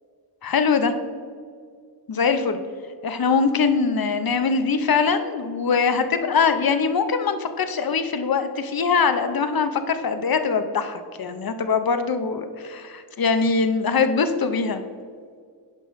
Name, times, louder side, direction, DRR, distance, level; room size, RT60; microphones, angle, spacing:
voice 1, 0.4-0.9 2.1-2.6 3.0-14.8, left 5 dB, 55° left, 9 dB, 0.7 m, -22 dB
9.8 x 5.6 x 3.1 m, 2.1 s
wide cardioid pair, 80°, 42 cm